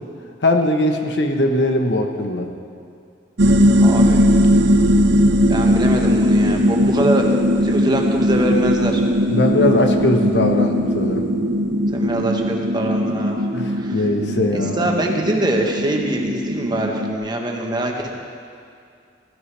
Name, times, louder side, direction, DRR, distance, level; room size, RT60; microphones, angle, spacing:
voice 1, 0.4-2.5 9.3-11.2 13.5-14.9, left 1 dB, 85° left, 4 dB, 1.2 m, -20 dB
sound 1, 3.4-17.1, equal, 80° right, 0.8 m, -18 dB
voice 2, 3.8-4.2 5.5-9.0 11.9-13.4 13.7-14.1 14.5-18.1, right 1 dB, 25° right, 1 dB, 1.3 m, -23 dB
16.0 x 14.5 x 3.4 m, 2.3 s
head